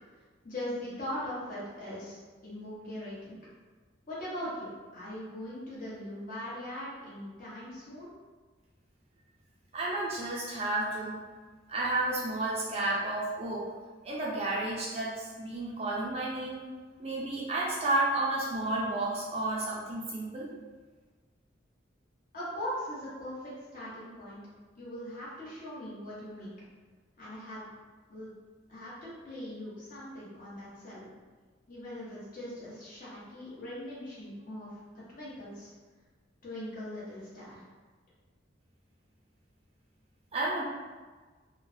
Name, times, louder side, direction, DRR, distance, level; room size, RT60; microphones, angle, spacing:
voice 1, 0.4-2.2 2.4-3.4 4.1-8.1 22.3-24.4 24.8-26.5 27.2-27.7 28.1-28.3 28.7-31.1 31.7-35.7 36.4-37.6, left 1 dB, 40° left, -9 dB, 1.0 m, -40 dB
voice 2, 9.7-11.2 11.7-13.7 14.0-16.6 17.0-20.5 40.3-40.6, right 2 dB, 30° right, -5 dB, 0.4 m, -31 dB
3.1 x 2.1 x 2.6 m, 1.4 s
head